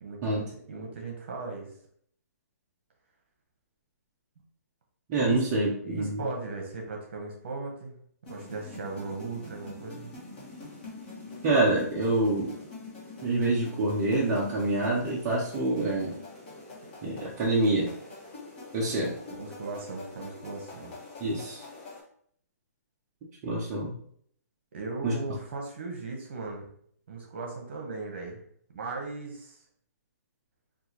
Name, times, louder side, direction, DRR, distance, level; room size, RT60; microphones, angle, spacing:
voice 1, 0.0-1.7 5.2-5.5 5.8-10.1 19.3-21.0 24.7-26.7 27.1-28.4 28.7-29.6, right 3 dB, 40° right, 1 dB, 0.9 m, -37 dB
voice 2, 5.1-6.2 11.4-12.5 13.2-16.2 17.0-17.9 18.7-19.1 21.2-21.6 23.4-23.9 25.0-25.1, right 2 dB, 15° right, -6 dB, 0.4 m, -26 dB
sound 1, 8.2-22.0, left 3 dB, 30° left, 1.3 m, -45 dB
3.6 x 2.4 x 2.9 m, 0.63 s
hypercardioid pair, 175°, 9 cm